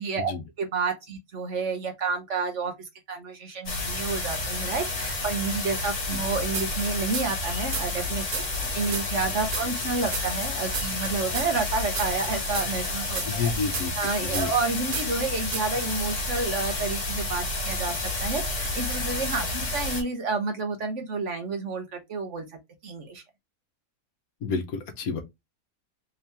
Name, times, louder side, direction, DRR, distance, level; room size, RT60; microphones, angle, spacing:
voice 1, 0.0-2.7 3.1-13.5 14.0-22.4 22.8-23.2, right 4 dB, 55° right, 1.2 m, -30 dB
sound 1, 3.7-20.0, left 2 dB, 55° left, 1.7 m, -30 dB
sound 2, 6.5-7.5 7.7-10.5 10.7-14.7 14.9-15.3 15.5-15.9, right 5 dB, 90° right, 1.6 m, -33 dB
voice 2, 13.3-13.9 14.2-14.5 24.4-25.2, left 5 dB, 75° left, 1.2 m, -29 dB
3.7 x 2.9 x 3.3 m
omnidirectional pair, 1.6 m